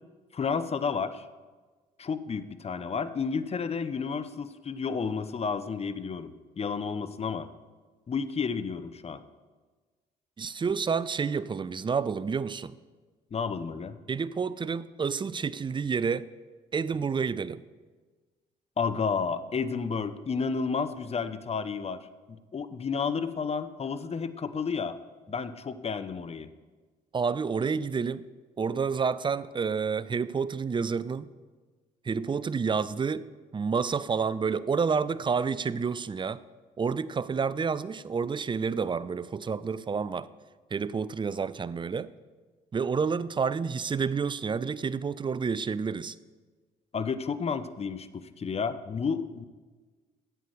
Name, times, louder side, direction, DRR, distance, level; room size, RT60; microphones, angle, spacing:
voice 1, 0.3-1.2 2.0-7.5 8.1-9.2 13.3-14.0 18.8-22.0 22.3-24.9 25.3-26.5 46.9-49.5, left 5 dB, 35° left, 0.8 m, -31 dB
voice 2, 10.4-12.8 14.1-16.3 16.7-17.6 27.1-28.2 28.6-31.3 32.0-36.4 36.8-40.3 40.7-42.1 42.7-46.2, right 5 dB, 25° right, 0.5 m, -29 dB
13.5 x 8.3 x 4.8 m
hypercardioid pair, 55°, 19 cm